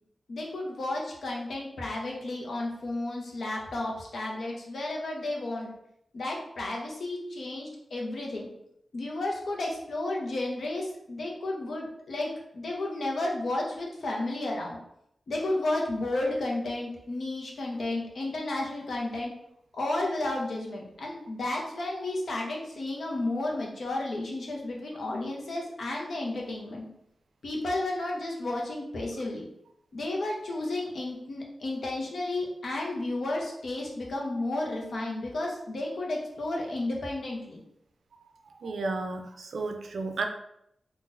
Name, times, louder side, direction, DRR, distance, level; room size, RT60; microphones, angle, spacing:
voice 1, 0.3-5.7 6.1-8.5 8.9-14.8 15.3-19.3 19.7-26.8 27.4-29.5 29.9-37.6, left 2 dB, 70° left, -1 dB, 0.8 m, -32 dB
voice 2, 38.6-40.3, right 3 dB, 80° right, 5 dB, 0.4 m, -32 dB
3.8 x 2.4 x 2.6 m, 0.76 s
wide cardioid pair, 110°, 0 cm